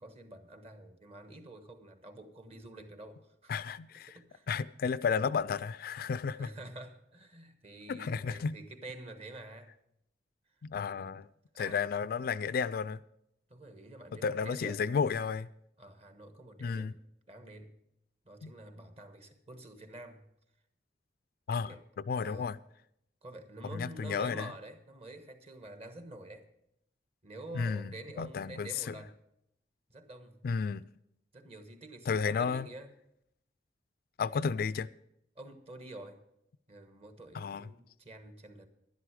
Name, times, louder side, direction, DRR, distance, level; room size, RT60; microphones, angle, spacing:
voice 1, 0.0-3.5 4.1-4.5 6.4-9.7 10.8-11.1 11.6-11.8 13.5-14.9 15.8-17.0 17.3-17.7 18.2-20.2 21.7-21.8 22.1-22.5 23.2-26.5 27.2-29.2 29.9-30.4 31.3-32.9 35.4-36.2 36.7-38.7, right 2 dB, 35° right, 1.2 m, -48 dB
voice 2, 3.5-4.2 4.5-6.5 7.9-8.6 10.6-11.3 11.6-13.0 14.2-15.5 16.6-16.9 18.4-18.5 21.5-21.7 22.1-22.6 23.7-24.5 27.5-27.9 28.2-29.0 30.4-30.8 32.1-32.7 34.2-34.9 37.3-37.7, left 5 dB, 55° left, 0.3 m, -32 dB
11.0 x 11.0 x 4.8 m
head